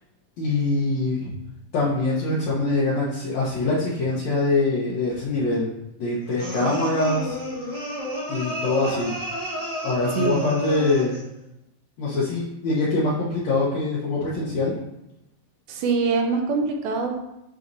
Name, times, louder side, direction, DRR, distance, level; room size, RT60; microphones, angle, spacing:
voice 1, 0.4-1.3 1.7-5.7 6.0-7.4 7.6-7.7 8.3-9.2 9.8-11.2 12.0-14.7, left 2 dB, 75° left, -8 dB, 1.5 m, -24 dB
sound 1, 6.4-11.3, equal, 25° right, 0.9 m, -30 dB
voice 2, 15.7-17.2, right 4 dB, 75° right, 3 dB, 2.3 m, -24 dB
11.0 x 4.2 x 2.7 m, 0.87 s
omnidirectional pair, 4.8 m